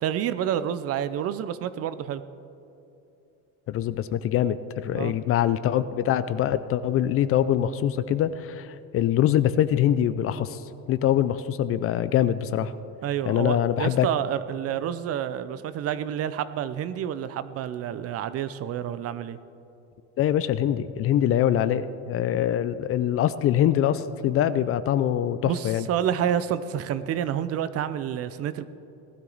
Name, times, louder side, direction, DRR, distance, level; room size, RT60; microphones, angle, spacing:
voice 1, 0.0-2.2 4.9-5.1 13.0-19.4 25.4-28.6, right 9 dB, 40° right, 14 dB, 0.5 m, -29 dB
voice 2, 3.7-10.6 10.9-12.7 13.3-14.1 20.2-25.9, left 11 dB, 40° left, 14 dB, 0.4 m, -24 dB
18.5 x 12.5 x 4.0 m, 2.8 s
cardioid pair, 135°, 37 cm